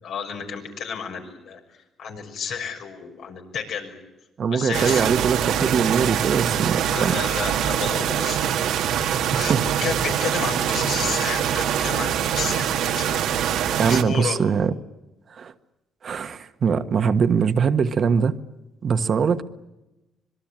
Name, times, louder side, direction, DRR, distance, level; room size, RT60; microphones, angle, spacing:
voice 1, 0.0-4.0 4.5-5.1 6.8-8.5 8.8-9.5 9.8-13.4 13.7-14.4, left 6 dB, 75° left, 3 dB, 6.1 m, -32 dB
voice 2, 4.4-7.2 9.3-9.6 13.8-14.7 15.3-15.5 16.0-18.4 18.8-19.4, right 6 dB, 55° right, 9 dB, 1.4 m, -22 dB
sound 1, 4.7-14.0, right 9 dB, 90° right, 1.9 m, -24 dB
25.5 x 22.0 x 9.1 m, 0.99 s
cardioid pair, 90°, 0 cm